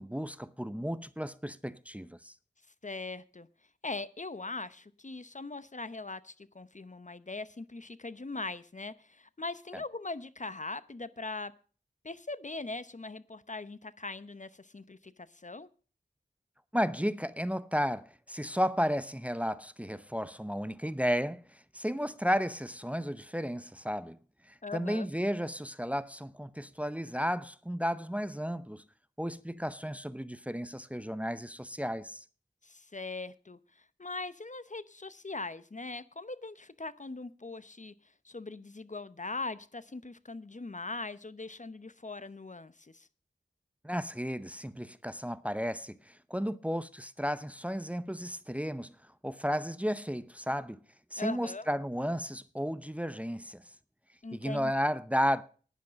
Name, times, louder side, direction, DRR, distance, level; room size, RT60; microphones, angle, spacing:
voice 1, 0.0-2.3 16.7-24.2 24.5-28.8 29.2-32.2 43.8-49.0 49.2-50.8 51.1-53.6 54.3-55.4, equal, 5° right, 0.7 m, -33 dB
voice 2, 2.8-3.5 3.8-11.5 12.0-15.7 24.6-25.1 32.6-37.9 38.2-43.1 51.2-51.7 54.2-54.7, left 3 dB, 40° left, 0.8 m, -41 dB
11.5 x 10.5 x 5.2 m
wide cardioid pair, 55°, 19 cm